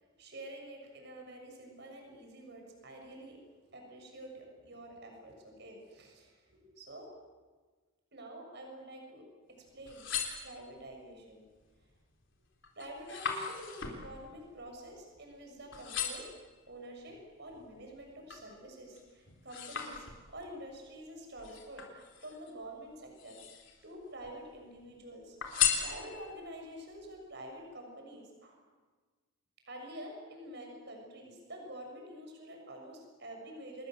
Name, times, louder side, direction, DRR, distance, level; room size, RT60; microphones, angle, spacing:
voice 1, 0.2-7.1 8.1-9.3 9.7-10.1 10.4-11.5 12.8-16.3 16.7-20.0 20.3-23.4 23.8-25.4 25.8-28.6 29.7-33.9, right 1 dB, 55° right, 2 dB, 6.9 m, -48 dB
sound 1, 9.7-11.0 11.6-12.0 12.3-15.4 15.7-16.4 17.0-18.5 18.9-20.5 21.4-22.5 23.1-23.9 24.2-24.9 25.4-26.5 27.0-27.1, left 8 dB, 60° left, 3.9 m, -37 dB
27.5 x 21.0 x 7.7 m, 1.4 s
head